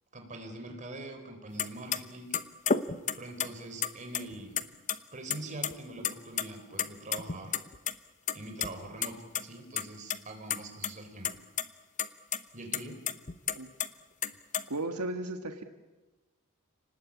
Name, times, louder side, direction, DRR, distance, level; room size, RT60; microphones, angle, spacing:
voice 1, 0.1-2.3 3.1-4.6 5.1-7.6 8.3-11.4 12.5-13.0, right 2 dB, 35° right, 4 dB, 4.3 m, -43 dB
sound 1, 1.6-1.7 1.9-2.0 2.3-3.5 3.8-4.6 4.9-5.0 5.3-5.7 6.0-6.4 6.8-7.9 8.3-8.7 9.0-9.1 9.3-9.4 9.8-10.2 10.5-10.9 11.2-11.6 12.0-12.1 12.3-12.4 12.7-13.9 14.2-14.6, left 7 dB, 35° left, 1.0 m, -30 dB
voice 2, 14.7-15.6, right 2 dB, 90° right, 6 dB, 1.6 m, -35 dB
30.0 x 19.5 x 8.6 m, 1.2 s
head